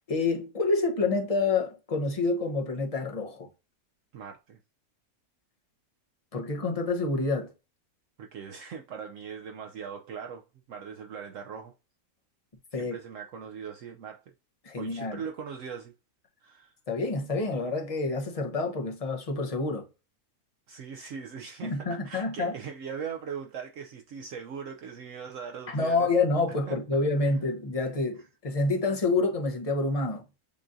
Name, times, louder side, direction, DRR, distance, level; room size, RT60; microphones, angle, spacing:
voice 1, 0.0-3.5 6.3-7.5 12.7-12.9 14.6-15.2 16.9-19.9 21.6-22.6 25.7-30.2, left 3 dB, 35° left, 0.6 m, -28 dB
voice 2, 4.1-4.6 8.2-11.7 12.8-14.2 14.8-15.9 16.4-16.7 20.7-26.1 26.7-26.8, right 7 dB, 65° right, 0.8 m, -40 dB
6.8 x 2.5 x 2.6 m
omnidirectional pair, 1.6 m